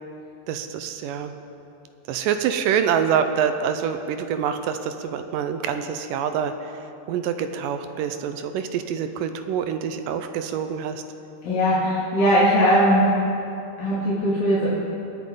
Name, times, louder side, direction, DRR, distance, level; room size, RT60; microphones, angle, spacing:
voice 1, 0.5-1.3 2.1-11.0, right 8 dB, 80° right, 8 dB, 2.2 m, -26 dB
voice 2, 11.4-13.1 13.8-14.7, equal, 70° left, -10 dB, 4.3 m, -19 dB
26.0 x 9.1 x 3.8 m, 2.8 s
omnidirectional pair, 4.1 m